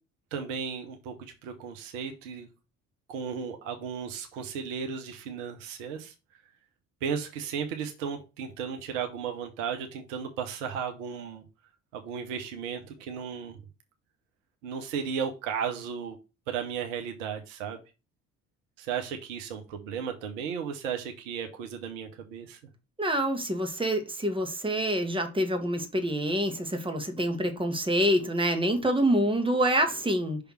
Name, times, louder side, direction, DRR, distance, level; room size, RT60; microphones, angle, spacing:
voice 1, 0.3-2.5 3.1-6.1 7.0-11.4 11.9-13.6 14.6-16.2 16.5-17.8 18.8-22.6, right 7 dB, 70° right, 1.1 m, -35 dB
voice 2, 23.0-30.4, right 1 dB, 15° right, 2.0 m, -26 dB
6.0 x 3.5 x 5.8 m
figure-of-eight pair, 50°, 38 cm